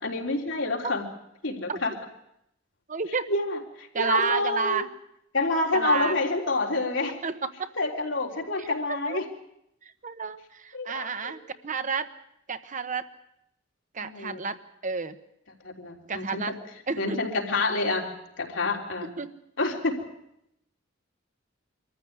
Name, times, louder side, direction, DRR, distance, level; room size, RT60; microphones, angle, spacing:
voice 1, 0.0-1.0 1.4-1.9 3.3-4.8 5.3-7.2 7.8-9.2 10.7-11.3 14.0-14.4 15.6-16.4 17.0-18.0 18.4-19.1 19.6-20.0, left 2 dB, 70° left, 1 dB, 3.6 m, -28 dB
voice 2, 2.9-3.3 3.9-4.9 5.7-6.2 7.2-7.7 8.6-9.2 9.8-12.1 12.5-13.1 13.9-14.6 14.8-15.2 16.1-16.5 16.9-17.2 19.2-19.3, right 5 dB, 40° right, 10 dB, 1.0 m, -30 dB
24.0 x 14.5 x 9.4 m, 0.80 s
head